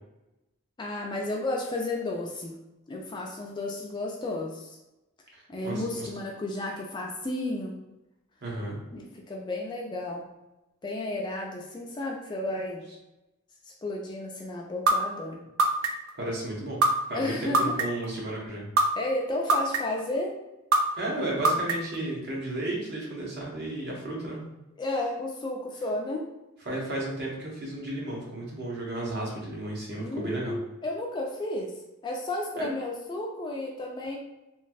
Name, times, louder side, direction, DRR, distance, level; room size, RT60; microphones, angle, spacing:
voice 1, 0.8-2.6 2.9-4.8 5.5-7.8 8.9-10.3 10.8-12.9 13.7-15.4 17.1-17.7 19.0-20.3 24.8-26.2 30.0-31.7 32.0-34.2, left 2 dB, 20° left, -1 dB, 0.3 m, -32 dB
voice 2, 5.3-6.1 8.4-8.8 16.2-16.8 17.1-18.6 21.0-24.5 26.6-30.6 32.6-32.7, right 1 dB, 50° right, -3 dB, 0.9 m, -33 dB
sound 1, 14.9-15.0 15.6-16.1 16.8-16.9 17.5-18.1 18.8-18.9 19.5-20.0 20.7-20.8 21.4-22.0, right 3 dB, 75° right, 0.4 m, -21 dB
3.0 x 2.3 x 2.5 m, 0.96 s
head